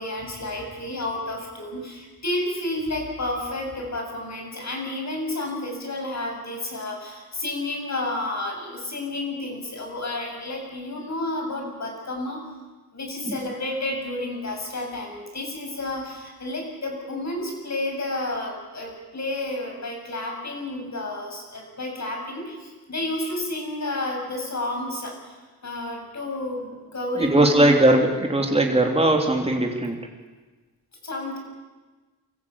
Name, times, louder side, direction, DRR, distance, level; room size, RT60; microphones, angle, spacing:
voice 1, 0.0-12.5 12.9-25.3 25.6-27.8 31.0-31.4, left 2 dB, 50° left, 2 dB, 7.5 m, -31 dB
voice 2, 27.1-30.0, right 1 dB, 15° right, 2 dB, 3.3 m, -19 dB
23.5 x 15.0 x 8.4 m, 1.3 s
cardioid pair, 55°, 36 cm